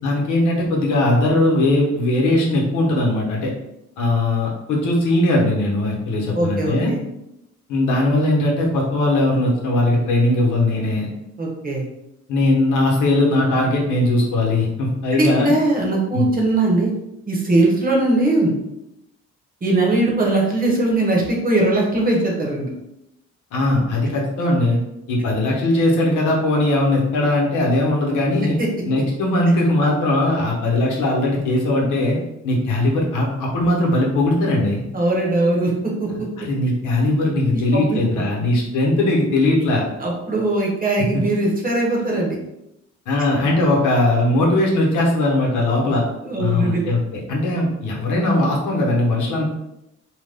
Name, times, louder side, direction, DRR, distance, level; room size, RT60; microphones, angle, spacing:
voice 1, 0.0-3.5 4.0-6.9 7.7-11.1 12.3-15.5 16.1-16.3 23.5-24.8 25.1-28.6 28.8-32.2 32.4-34.8 36.4-39.8 41.1-41.2 43.1-46.0 46.4-49.4, left 1 dB, 85° left, -1 dB, 0.9 m, -19 dB
voice 2, 6.3-7.0 11.4-11.8 15.1-16.9 17.3-18.5 19.6-22.7 28.6-28.7 34.9-35.7 36.0-36.1 37.5-38.0 40.0-42.4 46.2-46.8, right 2 dB, 30° right, -1 dB, 1.0 m, -20 dB
2.9 x 2.1 x 3.4 m, 0.85 s
cardioid pair, 90°, 30 cm